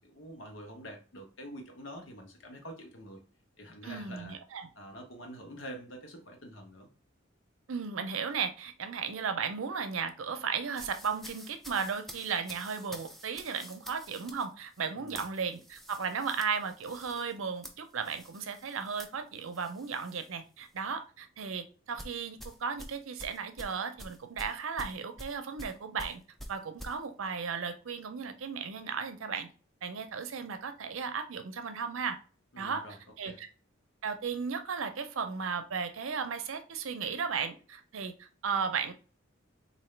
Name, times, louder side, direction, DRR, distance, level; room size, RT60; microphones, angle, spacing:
voice 1, 0.0-3.2 3.6-4.4 4.7-6.9 14.9-15.2 32.5-33.0 33.2-33.4, equal, 70° left, 3 dB, 1.0 m, -46 dB
voice 2, 3.8-4.7 7.7-26.2 26.5-29.5 29.8-32.2 32.6-32.8 33.2-33.5 34.0-38.9, right 6 dB, 85° right, 9 dB, 0.6 m, -35 dB
sound 1, 10.7-20.3 20.6-20.9 22.0-27.0, equal, ahead, 0.4 m, -48 dB
3.9 x 2.6 x 3.3 m, 0.35 s
head